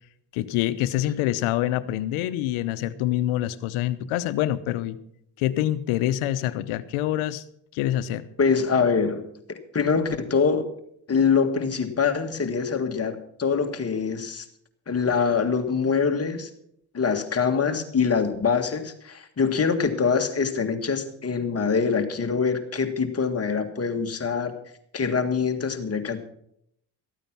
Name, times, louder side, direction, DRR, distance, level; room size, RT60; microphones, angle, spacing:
voice 1, 0.3-5.0 5.4-7.4 7.7-8.3, left 13 dB, 80° left, 13 dB, 0.9 m, -26 dB
voice 2, 8.4-10.7 11.1-14.5 14.9-16.5 16.9-24.5 24.9-26.3, left 5 dB, 30° left, 6 dB, 1.8 m, -24 dB
14.0 x 9.0 x 6.0 m, 0.72 s
supercardioid pair, 85°, 49 cm